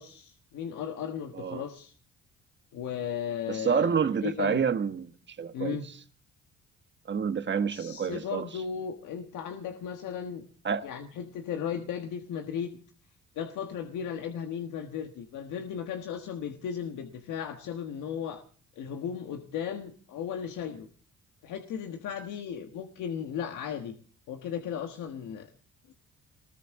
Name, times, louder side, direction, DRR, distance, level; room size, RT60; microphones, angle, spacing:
voice 1, 0.0-1.9 2.7-3.9 4.2-4.6 5.5-5.9 7.7-10.5 10.8-12.7 13.3-18.4 18.7-20.9 21.4-23.9 24.3-25.5, left 8 dB, 85° left, 1.4 m, -36 dB
voice 2, 3.5-5.8 7.1-8.5 10.6-10.8, right 6 dB, 35° right, 1.3 m, -28 dB
20.0 x 19.0 x 3.6 m
cardioid pair, 90°, 30 cm